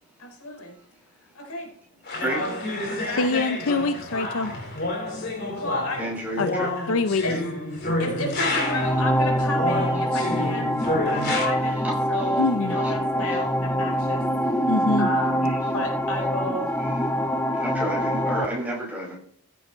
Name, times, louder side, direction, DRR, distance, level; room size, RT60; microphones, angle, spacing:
voice 1, 0.2-0.7 1.3-1.7 2.3-2.6 2.8-3.3 5.5-6.1 7.2-7.4 8.0-14.6 15.0-16.9, left 1 dB, 85° left, 2 dB, 3.9 m, -32 dB
sound 1, 2.1-9.0 9.5-11.5, left 2 dB, 50° left, 4.1 m, -29 dB
voice 2, 3.0-4.5 6.4-6.5 6.9-7.2 12.4-12.8 14.7-15.1, left 3 dB, 65° left, 9 dB, 0.6 m, -24 dB
voice 3, 6.0-6.7 11.8-12.4 12.7-13.0 13.3-13.4 15.4-15.6 16.8-17.0 17.5-19.2, right 1 dB, 5° right, -3 dB, 5.6 m, -31 dB
sound 2, 8.4-18.4, equal, 10° left, 0.5 m, -25 dB
15.0 x 8.5 x 3.1 m, 0.64 s
head